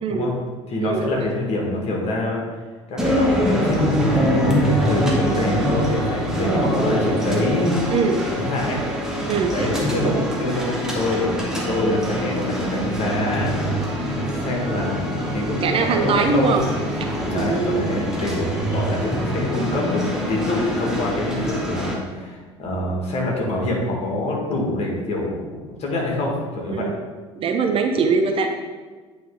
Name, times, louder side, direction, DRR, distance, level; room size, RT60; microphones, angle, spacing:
voice 1, 0.0-0.3 0.8-1.3 7.9-8.2 9.3-9.7 15.6-16.6 17.3-17.9 26.7-27.0 27.4-28.5, right 4 dB, 35° right, 4 dB, 0.6 m, -21 dB
voice 2, 0.7-2.4 2.9-7.7 8.3-8.8 9.5-13.6 14.3-16.6 17.3-20.0 20.3-26.9, left 2 dB, 45° left, -2 dB, 1.9 m, -26 dB
sound 1, 3.0-21.9, equal, 5° right, 1.4 m, -24 dB
8.8 x 3.4 x 3.9 m, 1.4 s
figure-of-eight pair, 65°, 16 cm